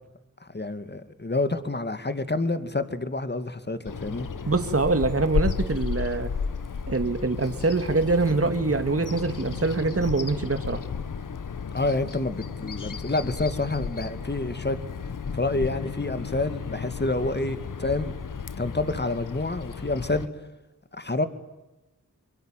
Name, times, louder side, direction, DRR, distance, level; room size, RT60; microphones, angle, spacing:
voice 1, 0.4-4.3 11.7-14.8 15.3-18.1 18.6-20.3 20.9-21.3, left 2 dB, 35° left, 2.5 m, -28 dB
Bird vocalization bird call bird song, 3.9-20.3, left 6 dB, 75° left, 1.3 m, -33 dB
voice 2, 4.5-6.3 6.9-10.8, right 3 dB, 45° right, 2.4 m, -24 dB
26.0 x 23.5 x 9.3 m
cardioid pair, 40°, 32 cm